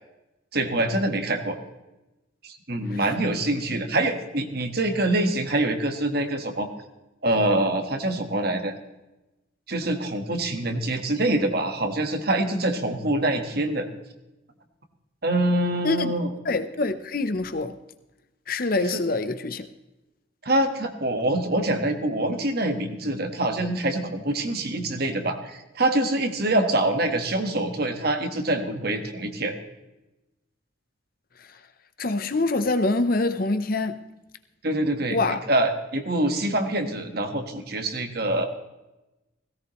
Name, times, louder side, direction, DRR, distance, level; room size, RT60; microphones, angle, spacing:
voice 1, 0.5-1.6 2.4-6.7 7.2-8.7 9.7-13.9 15.2-16.3 18.8-19.0 20.4-29.5 34.6-38.5, right 1 dB, 50° right, 1.5 m, -25 dB
voice 2, 16.5-17.7 18.5-19.7 32.0-34.0 35.1-35.4, left 2 dB, 45° left, 0.8 m, -25 dB
17.5 x 16.5 x 3.1 m
head